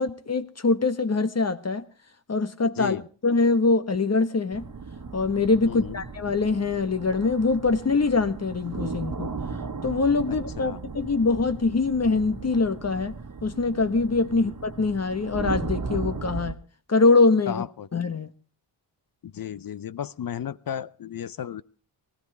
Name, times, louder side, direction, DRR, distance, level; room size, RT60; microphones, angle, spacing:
voice 1, 0.0-1.8 2.3-3.0 3.2-4.6 5.1-9.3 9.8-13.1 13.4-16.6 16.9-17.6 17.9-18.3, left 3 dB, 35° left, 1.3 m, -23 dB
voice 2, 2.8-3.1 5.7-6.0 10.3-10.8 14.3-14.5 17.5-17.9 19.2-21.6, left 9 dB, 50° left, 0.8 m, -34 dB
sound 1, 4.5-16.5, right 4 dB, 45° right, 1.6 m, -36 dB
19.0 x 14.5 x 4.7 m
supercardioid pair, 50°, 45 cm